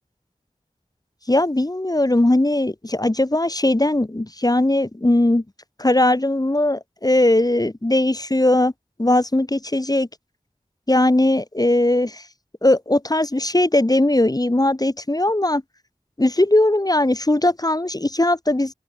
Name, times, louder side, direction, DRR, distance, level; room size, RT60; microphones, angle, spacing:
voice 1, 1.3-5.4 5.8-8.7 9.0-10.1 10.9-12.2 12.6-15.6 16.2-18.7, left 1 dB, 25° left, 1.0 m, -19 dB
wide cardioid pair, 40°, 14 cm